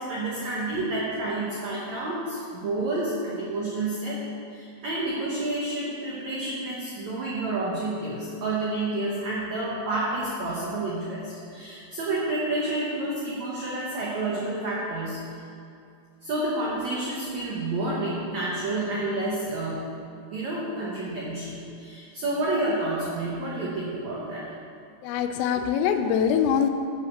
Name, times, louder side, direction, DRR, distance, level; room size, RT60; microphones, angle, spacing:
voice 1, 0.0-15.4 16.2-20.0 20.3-24.5, right 2 dB, 80° right, -6 dB, 1.6 m, -29 dB
voice 2, 25.0-26.7, left 8 dB, 85° left, 7 dB, 2.8 m, -23 dB
10.5 x 5.0 x 6.5 m, 2.5 s
omnidirectional pair, 5.0 m